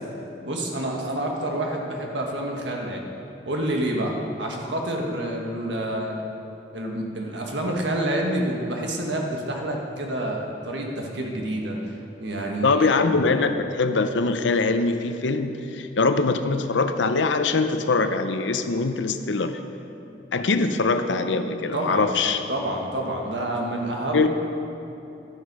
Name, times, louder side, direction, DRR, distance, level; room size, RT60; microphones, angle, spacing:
voice 1, 0.4-3.1 3.5-6.2 6.7-11.8 12.2-13.0 21.7-22.1 22.5-24.3, right 1 dB, 75° right, 0 dB, 1.6 m, -28 dB
voice 2, 12.6-19.6 20.3-22.4 24.1-24.3, left 3 dB, 80° left, 9 dB, 0.6 m, -23 dB
12.0 x 8.0 x 5.4 m, 2.9 s
head